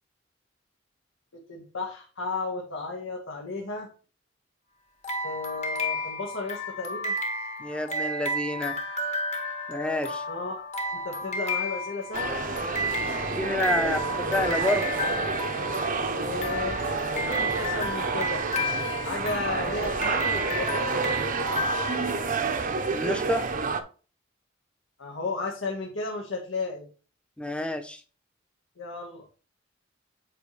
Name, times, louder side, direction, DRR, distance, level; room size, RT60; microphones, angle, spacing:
voice 1, 1.3-3.9 5.2-7.1 10.3-10.6 11.0-13.2 13.8-14.1 16.1-18.4 19.0-21.0 25.0-26.9 28.8-29.2, left 3 dB, 85° left, -1 dB, 1.5 m, -34 dB
sound 1, 5.0-22.7, left 1 dB, 35° left, 1.4 m, -32 dB
voice 2, 7.6-8.8 9.7-10.2 13.2-15.0 22.9-23.5 27.4-28.0, left 1 dB, 5° left, 7 dB, 0.8 m, -29 dB
sound 2, 12.1-23.8, right 4 dB, 45° right, 0.7 m, -29 dB
8.4 x 4.5 x 3.2 m, 0.36 s
head